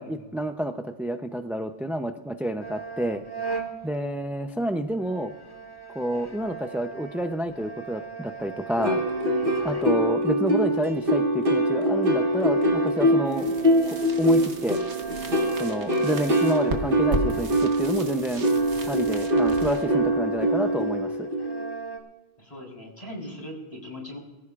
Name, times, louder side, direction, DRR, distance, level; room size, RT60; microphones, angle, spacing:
voice 1, 0.0-3.2 3.8-5.3 5.9-9.0 9.6-13.5 13.9-14.8 15.5-18.5 18.9-21.1, right 1 dB, ahead, 7 dB, 0.4 m, -29 dB
sound 1, 2.6-4.6 5.0-10.3 11.0-11.1 11.5-18.0 18.4-22.0, right 6 dB, 20° left, 1.8 m, -40 dB
sound 2, 8.8-21.7, equal, 55° right, 1.8 m, -24 dB
voice 2, 9.2-9.6 18.5-19.0 22.4-24.2, left 1 dB, 35° left, -1 dB, 4.2 m, -41 dB
sound 3, 13.3-21.0, right 2 dB, 85° right, 1.5 m, -37 dB
23.5 x 14.5 x 2.4 m, 1.1 s
omnidirectional pair, 1.1 m